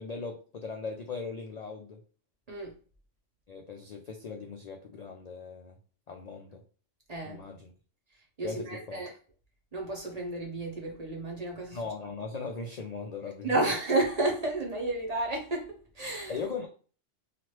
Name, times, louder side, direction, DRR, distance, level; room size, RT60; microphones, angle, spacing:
voice 1, 0.0-2.0 3.5-5.8 6.1-6.6 7.2-7.7 8.4-9.0 11.7-13.6 16.3-16.7, left 4 dB, 80° left, 0.3 m, -39 dB
voice 2, 7.1-7.4 8.4-9.1 9.7-11.8 13.4-16.4, right 2 dB, 40° right, 0.6 m, -31 dB
2.9 x 2.5 x 3.0 m
omnidirectional pair, 1.3 m